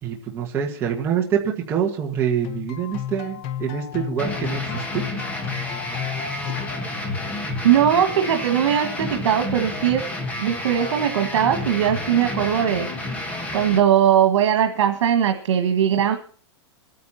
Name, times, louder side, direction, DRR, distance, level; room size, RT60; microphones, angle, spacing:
voice 1, 0.0-5.0, right 8 dB, 15° right, -1 dB, 1.6 m, -25 dB
sound 1, 2.4-7.6, left 10 dB, 30° left, 1.0 m, -33 dB
sound 2, 4.2-13.8, left 1 dB, 10° left, 1.5 m, -30 dB
voice 2, 7.6-10.0 10.4-12.9 13.5-16.2, right 9 dB, 85° right, 6 dB, 1.8 m, -20 dB
24.0 x 9.6 x 4.2 m, 0.43 s
supercardioid pair, 175°, 15 cm